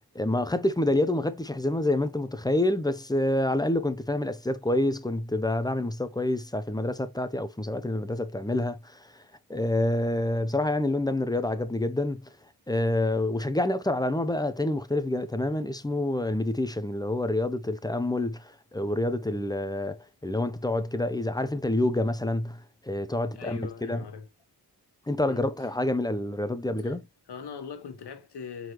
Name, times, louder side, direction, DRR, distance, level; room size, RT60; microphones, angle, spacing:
voice 1, 0.1-9.2 9.5-12.2 12.7-24.0 25.1-27.0, left 1 dB, 10° left, 0.6 m, -27 dB
voice 2, 23.3-24.3 25.2-25.7 26.8-26.9 27.3-28.7, left 6 dB, 75° left, 1.2 m, -40 dB
4.6 x 3.9 x 3.0 m
cardioid pair, 60°, 40 cm